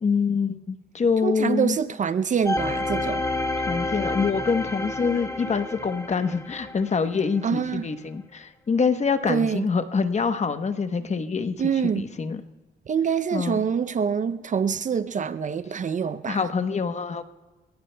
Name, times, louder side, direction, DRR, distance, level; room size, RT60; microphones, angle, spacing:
voice 1, 0.0-1.8 3.6-12.4 13.3-13.6 16.3-17.2, left 5 dB, 35° left, 1.0 m, -25 dB
voice 2, 1.2-3.2 7.4-7.9 9.3-9.6 11.6-12.0 12.9-16.4, right 7 dB, 40° right, 0.5 m, -25 dB
sound 1, 2.5-7.3 7.8-7.9, left 2 dB, 15° left, 1.2 m, -29 dB
28.0 x 17.5 x 2.2 m
cardioid pair, 90°, 20 cm